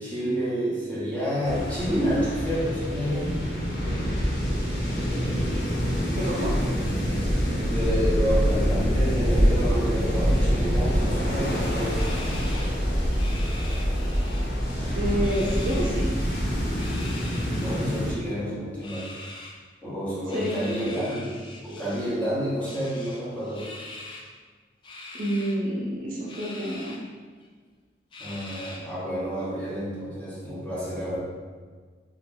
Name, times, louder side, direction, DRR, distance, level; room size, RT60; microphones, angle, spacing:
voice 1, 0.0-3.5 7.5-12.1 17.6-19.1 19.8-21.2 21.6-23.7 28.2-31.2, equal, 10° left, -9 dB, 0.7 m, -29 dB
sound 1, 1.4-18.1, equal, 55° left, 0.8 m, -25 dB
voice 2, 6.1-6.6 14.9-16.2 20.3-20.5 25.2-27.0, equal, 45° right, -4 dB, 0.6 m, -28 dB
sound 2, 11.9-14.4 14.7-15.9 16.7-18.0 18.8-19.6 20.3-22.2 22.6-24.3 24.8-25.6 26.3-27.0 27.4-27.5 28.1-29.0, left 2 dB, 25° left, 0.3 m, -43 dB
2.9 x 2.5 x 3.7 m, 1.5 s
head